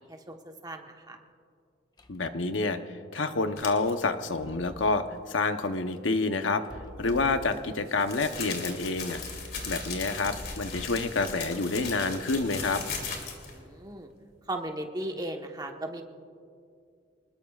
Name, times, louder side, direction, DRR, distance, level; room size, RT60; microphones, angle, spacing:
voice 1, 0.1-1.2 13.5-14.1 14.5-16.0, right 1 dB, 20° right, 3 dB, 1.1 m, -37 dB
sound 1, 2.0-2.3 4.2-5.1 6.6-7.9 8.9-11.1 11.8-12.9, left 1 dB, 20° left, 0.7 m, -46 dB
voice 2, 2.1-2.8 3.1-6.6 7.0-9.2 9.7-12.8, left 3 dB, 80° left, 8 dB, 0.9 m, -28 dB
sound 2, 3.6-3.9 7.0-13.6, left 5 dB, 55° left, 2.7 m, -38 dB
28.0 x 20.0 x 2.4 m, 2.3 s
head